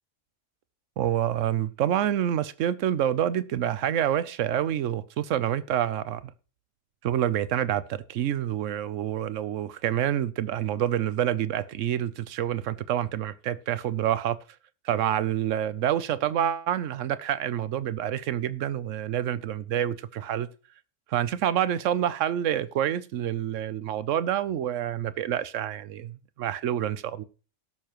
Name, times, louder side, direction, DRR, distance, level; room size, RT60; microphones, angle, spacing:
voice 1, 1.0-6.2 7.0-14.4 14.8-20.5 21.1-27.2, right 10 dB, 75° right, 1.0 m, -27 dB
18.0 x 6.7 x 3.0 m
omnidirectional pair, 1.3 m